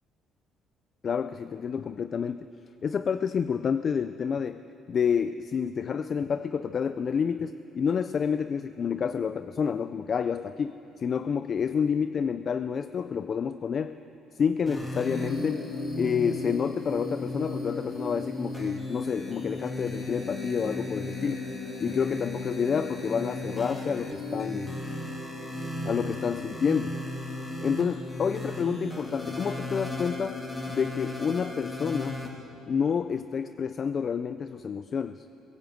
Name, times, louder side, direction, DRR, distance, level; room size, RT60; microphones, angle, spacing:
voice 1, 1.0-2.5 2.8-4.6 4.9-14.0 14.4-15.7 16.0-21.4 21.8-24.8 25.8-27.0 27.6-30.4 30.7-32.2 32.7-35.3, left 6 dB, 35° left, 12 dB, 0.4 m, -29 dB
sound 1, 14.7-32.3, left 2 dB, 10° left, 2.6 m, -35 dB
22.0 x 16.0 x 7.9 m, 2.9 s
cardioid pair, 160°, 0 cm